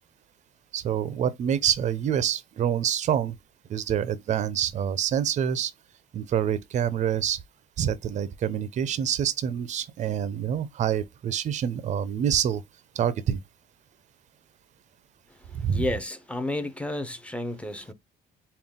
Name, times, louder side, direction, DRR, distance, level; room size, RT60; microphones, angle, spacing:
voice 1, 0.7-3.3 3.7-5.7 6.1-7.4 7.8-12.6 13.0-13.4 15.6-15.9, right 9 dB, 45° right, 0.5 m, -26 dB
voice 2, 15.7-17.9, left 1 dB, 5° left, 0.6 m, -31 dB
3.7 x 2.2 x 3.5 m
cardioid pair, 110°, 17 cm